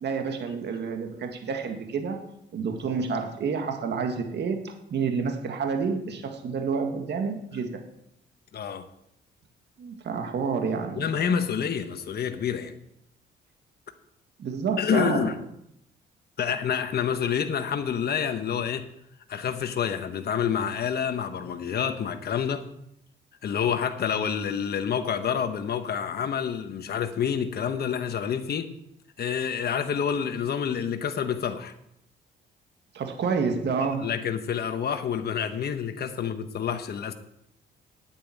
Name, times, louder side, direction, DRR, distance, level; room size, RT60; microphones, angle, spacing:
voice 1, 0.0-2.3 2.5-7.8 9.8-11.1 14.4-15.4 32.9-34.1, right 5 dB, 60° right, 1.9 m, -29 dB
voice 2, 8.5-8.9 10.9-12.7 14.8-15.4 16.4-18.9 19.3-22.7 23.4-28.7 29.2-31.7 33.8-37.1, left 7 dB, 55° left, 1.2 m, -28 dB
9.2 x 8.9 x 8.6 m
cardioid pair, 90°, 20 cm